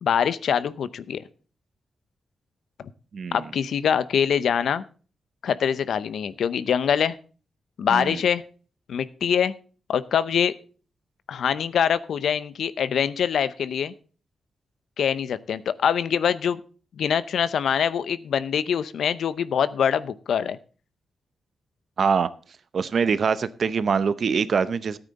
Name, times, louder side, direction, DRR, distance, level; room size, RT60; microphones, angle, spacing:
voice 1, 0.0-1.2 3.3-4.8 5.4-7.2 7.8-8.4 8.9-9.5 9.9-10.5 11.3-13.9 15.0-16.6 17.0-20.6, left 8 dB, 80° left, 15 dB, 0.7 m, -24 dB
voice 2, 3.1-3.5 7.9-8.2 22.0-22.3 22.7-25.0, right 6 dB, 55° right, 15 dB, 0.7 m, -24 dB
13.5 x 8.9 x 4.0 m, 0.39 s
wide cardioid pair, 125°, 0 cm